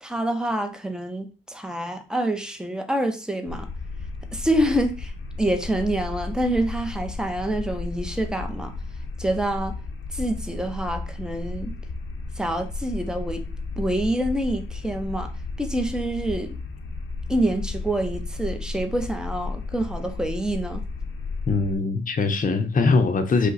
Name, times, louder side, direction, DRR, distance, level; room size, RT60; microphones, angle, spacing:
voice 1, 0.0-3.7 4.3-5.1 5.4-8.7 9.2-9.8 10.1-11.7 12.4-13.5 13.8-15.3 15.6-16.6 17.3-20.8, right 1 dB, 5° right, 0.6 m, -26 dB
sound 1, 3.5-21.7, left 3 dB, 85° left, 0.7 m, -33 dB
voice 2, 21.5-23.5, left 4 dB, 40° left, 0.6 m, -21 dB
5.3 x 2.1 x 4.0 m
wide cardioid pair, 125°, 20 cm